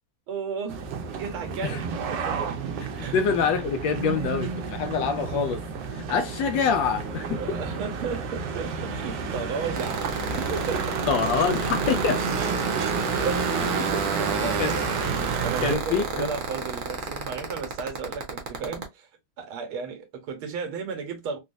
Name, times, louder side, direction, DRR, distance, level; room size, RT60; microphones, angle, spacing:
voice 1, 0.3-0.9 1.2-2.6 2.9-3.2 7.4-11.0 13.2-19.1 19.4-21.4, right 5 dB, 85° right, 1.9 m, -34 dB
sound 1, 0.7-15.8, right 5 dB, 70° right, 1.3 m, -30 dB
voice 2, 3.1-5.6 5.9-7.6 11.1-12.2 14.6-14.7 15.6-16.3, left 6 dB, 75° left, 1.1 m, -25 dB
sound 2, 7.3-15.4, left 3 dB, 50° left, 0.7 m, -46 dB
sound 3, 9.7-18.8, right 4 dB, 55° right, 1.0 m, -30 dB
4.0 x 2.3 x 2.5 m
omnidirectional pair, 2.3 m